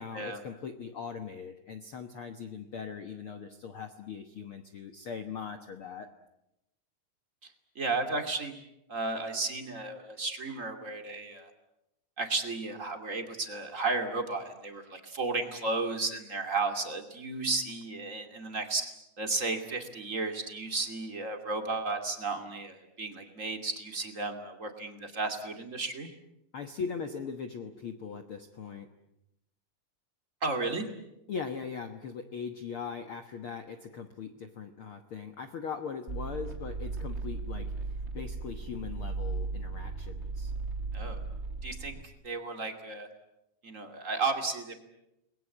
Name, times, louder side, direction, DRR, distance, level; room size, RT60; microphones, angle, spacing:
voice 1, 0.0-6.1 26.5-28.9 31.3-40.5, left 6 dB, 75° left, 7 dB, 1.2 m, -40 dB
voice 2, 7.8-8.5 8.9-11.5 12.2-18.9 19.2-26.1 30.4-30.9 40.9-41.2 41.6-41.9 42.2-43.1 43.6-44.7, right 3 dB, 25° right, 6 dB, 2.4 m, -33 dB
sound 1, 36.1-42.0, right 3 dB, 55° right, 0.7 m, -36 dB
29.5 x 21.5 x 8.5 m, 0.87 s
omnidirectional pair, 4.4 m